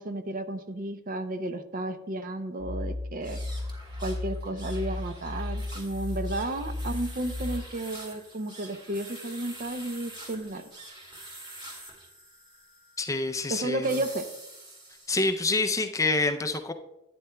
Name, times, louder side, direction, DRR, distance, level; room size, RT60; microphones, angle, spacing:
voice 1, 0.0-3.4 4.0-10.6 13.5-14.3, right 1 dB, 40° right, 9 dB, 0.6 m, -33 dB
sound 1, 2.6-7.6, left 2 dB, 85° right, 1.0 m, -35 dB
sound 2, 3.2-15.7, right 1 dB, 25° right, 1.9 m, -46 dB
voice 2, 13.0-13.9 15.1-16.7, left 3 dB, 15° left, 7 dB, 0.5 m, -27 dB
12.0 x 9.3 x 2.2 m, 0.91 s
head